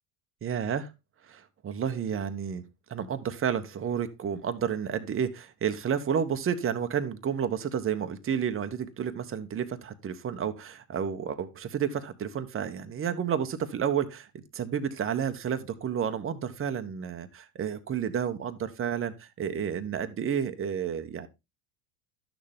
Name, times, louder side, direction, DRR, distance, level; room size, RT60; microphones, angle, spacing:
voice 1, 0.4-0.9 1.3-2.6 2.9-21.3, right 8 dB, 25° right, 1.2 m, -31 dB
11.5 x 6.6 x 3.6 m
hypercardioid pair, 95°, 46 cm